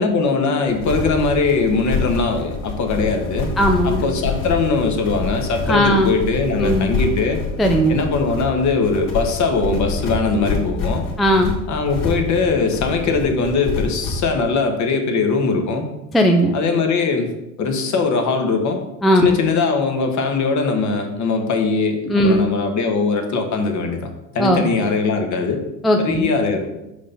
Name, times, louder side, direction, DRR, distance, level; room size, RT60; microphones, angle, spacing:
voice 1, 0.0-3.5 3.8-7.4 7.9-11.0 11.7-15.9 16.5-17.3 17.6-18.8 19.1-24.1 24.3-25.6 26.0-26.7, left 4 dB, 40° left, 5 dB, 1.3 m, -20 dB
sound 1, 0.7-14.3, left 4 dB, 65° left, 2.3 m, -27 dB
voice 2, 3.6-4.0 5.7-6.2 6.6-6.9 7.6-8.0 11.2-11.5 16.1-16.5 19.0-19.4 22.1-22.5 24.4-24.7 25.8-26.3, equal, ahead, 2 dB, 0.4 m, -17 dB
5.4 x 5.0 x 5.4 m, 0.92 s
hypercardioid pair, 95°, 42 cm